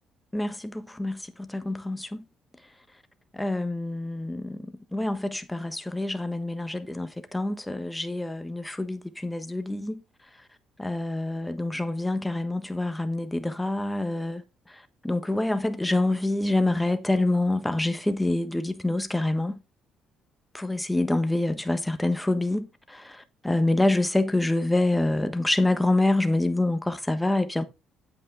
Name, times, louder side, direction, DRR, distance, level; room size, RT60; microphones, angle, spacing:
voice 1, 0.3-2.2 3.3-10.0 10.8-14.4 15.0-19.6 20.5-27.6, left 2 dB, 10° left, 1.2 m, -26 dB
8.5 x 8.1 x 3.5 m
cardioid pair, 95°, 0 cm